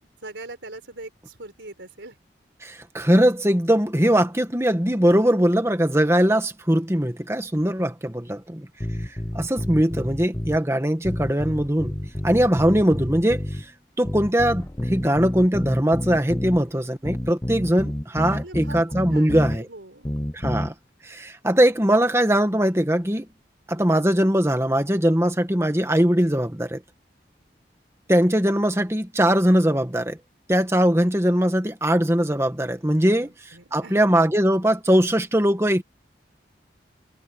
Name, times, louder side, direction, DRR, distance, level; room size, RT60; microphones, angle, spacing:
voice 1, 0.0-2.2 18.3-18.8 19.1-20.1 33.0-34.1, right 2 dB, 90° right, 4.6 m, -41 dB
voice 2, 2.6-8.7 9.3-11.9 12.2-13.6 14.0-19.7 20.3-20.7 21.0-23.3 23.7-26.8 28.1-30.2 30.5-35.8, equal, 15° right, 1.6 m, -21 dB
sound 1, 8.8-10.6 11.0-13.7 14.0-16.6 17.0-19.6 20.0-20.7, left 1 dB, 15° left, 0.7 m, -29 dB
head